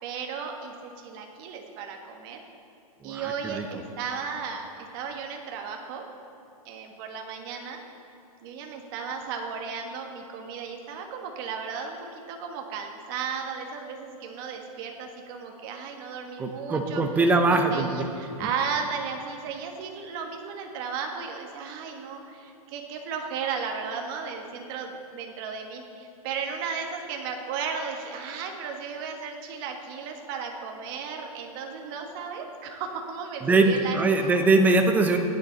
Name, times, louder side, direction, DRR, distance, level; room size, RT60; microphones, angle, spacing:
voice 1, 0.0-2.4 3.0-6.1 6.6-7.8 8.4-17.0 17.5-34.4, right 6 dB, 40° right, 3 dB, 1.5 m, -35 dB
voice 2, 3.0-3.7 16.4-18.0 33.4-35.2, right 3 dB, 10° right, 5 dB, 0.7 m, -22 dB
16.5 x 10.0 x 4.0 m, 2.6 s
hypercardioid pair, 150°, 19 cm